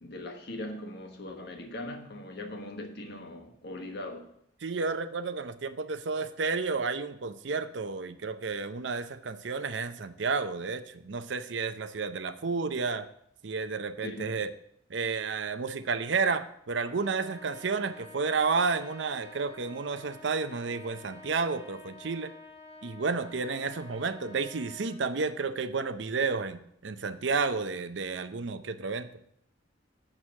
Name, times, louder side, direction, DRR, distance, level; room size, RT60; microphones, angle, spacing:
voice 1, 0.0-4.3 14.0-14.4, left 1 dB, 55° left, 1.3 m, -40 dB
voice 2, 4.6-13.1 13.4-14.5 14.9-22.3 22.8-29.1, right 4 dB, 65° right, 0.6 m, -31 dB
Trumpet, 16.9-25.0, left 2 dB, 30° left, 1.1 m, -50 dB
7.4 x 6.4 x 6.3 m
head